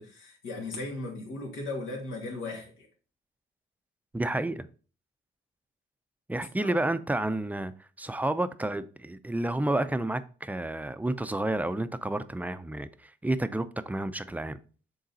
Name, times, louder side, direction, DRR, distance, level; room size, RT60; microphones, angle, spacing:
voice 1, 0.0-2.9 6.5-6.9, left 2 dB, 90° left, 2.3 m, -37 dB
voice 2, 4.1-4.7 6.3-7.7 8.0-14.6, right 1 dB, 10° right, 0.4 m, -30 dB
6.5 x 3.9 x 4.0 m
cardioid pair, 90°, 20 cm